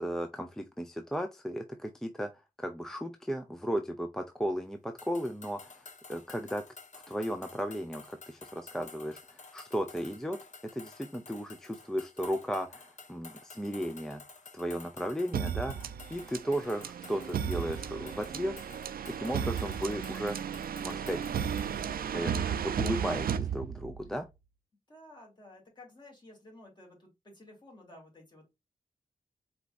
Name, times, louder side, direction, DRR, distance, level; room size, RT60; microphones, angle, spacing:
voice 1, 0.0-2.3 2.6-6.6 6.9-10.4 10.6-14.2 14.5-18.5 19.1-21.3 22.1-24.3, equal, 5° left, 0.4 m, -35 dB
sound 1, 5.0-21.8, left 4 dB, 55° left, 0.9 m, -52 dB
sound 2, 15.3-24.2, right 8 dB, 90° right, 0.4 m, -34 dB
voice 2, 24.9-28.5, left 1 dB, 30° left, 2.5 m, -53 dB
4.4 x 4.1 x 2.4 m
wide cardioid pair, 165°, 15 cm